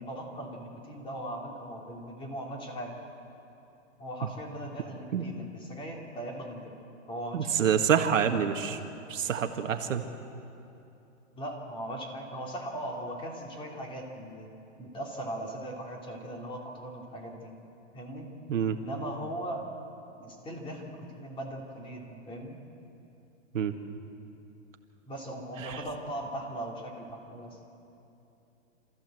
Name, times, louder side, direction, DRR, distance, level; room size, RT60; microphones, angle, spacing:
voice 1, 0.0-3.0 4.0-6.7 7.1-7.7 11.3-14.5 14.8-17.5 17.9-18.3 18.7-19.7 20.2-22.6 25.0-27.6, right 1 dB, 15° left, 0 dB, 3.0 m, -39 dB
voice 2, 7.3-8.8 9.1-10.0 18.5-18.8 23.5-23.7 25.6-25.8, right 8 dB, 80° right, 5 dB, 1.8 m, -27 dB
26.5 x 14.5 x 7.9 m, 2.9 s
hypercardioid pair, 145°, 38 cm